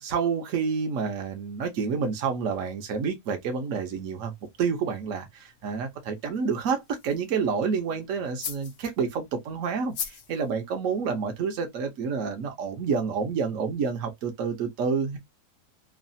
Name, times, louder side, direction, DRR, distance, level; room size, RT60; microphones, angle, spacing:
voice 1, 0.0-4.3 4.6-15.2, right 5 dB, 60° right, 1.1 m, -29 dB
sound 1, 3.6-11.4, left 7 dB, 85° left, 0.4 m, -44 dB
3.2 x 2.3 x 2.6 m
omnidirectional pair, 1.6 m